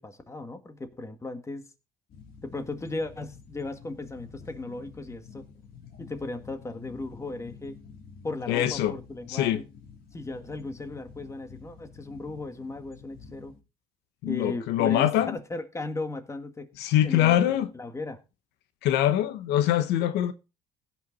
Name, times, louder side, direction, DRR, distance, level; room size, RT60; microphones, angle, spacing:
voice 1, 0.0-1.7 2.4-5.5 6.0-7.8 8.2-9.6 10.1-13.5 14.3-16.7 17.0-18.2, left 2 dB, 15° left, 1.8 m, -36 dB
sound 1, 2.1-13.6, left 6 dB, 60° left, 2.9 m, -49 dB
voice 2, 8.5-8.9 9.3-9.6 14.2-15.4 16.8-17.7 18.8-20.3, left 12 dB, 90° left, 1.0 m, -23 dB
16.5 x 6.0 x 4.0 m
cardioid pair, 110°, 17 cm